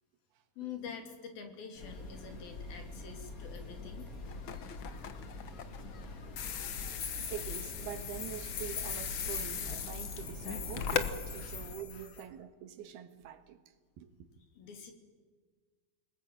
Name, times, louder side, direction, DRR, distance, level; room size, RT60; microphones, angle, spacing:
voice 1, 0.6-4.1 11.3-12.1 14.6-14.9, left 6 dB, 70° left, 4.7 m, -46 dB
sound 1, 1.7-11.7, left 2 dB, 30° left, 1.9 m, -45 dB
sound 2, 3.6-3.7 4.0-4.1 7.0-12.2, left 6 dB, 55° left, 4.0 m, -43 dB
sound 3, 4.3-11.1, left 8 dB, 90° left, 1.1 m, -39 dB
voice 2, 7.3-14.1, right 9 dB, 85° right, 3.6 m, -45 dB
29.0 x 20.5 x 9.4 m
omnidirectional pair, 4.4 m